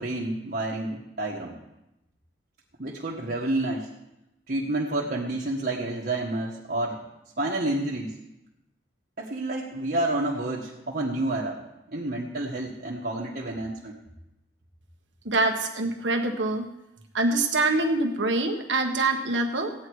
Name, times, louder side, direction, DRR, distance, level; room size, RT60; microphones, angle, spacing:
voice 1, 0.0-1.5 2.8-3.9 4.5-7.0 7.4-8.1 9.2-11.6 11.9-14.0, right 2 dB, 50° right, -3 dB, 1.5 m, -29 dB
voice 2, 15.2-16.7 17.1-19.7, right 2 dB, 80° right, 4 dB, 1.5 m, -25 dB
16.0 x 9.7 x 4.7 m, 0.90 s
head